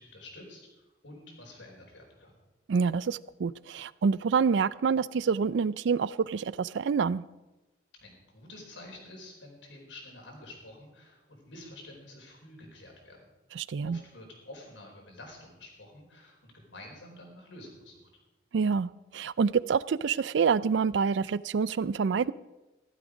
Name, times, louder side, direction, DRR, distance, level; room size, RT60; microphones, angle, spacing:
voice 1, 0.0-2.4 7.9-13.3 13.8-18.1, left 1 dB, 85° left, 1 dB, 4.4 m, -49 dB
voice 2, 2.7-7.2 13.6-14.0 18.5-22.3, right 5 dB, 70° right, 19 dB, 0.4 m, -27 dB
15.0 x 12.5 x 5.1 m, 1.1 s
head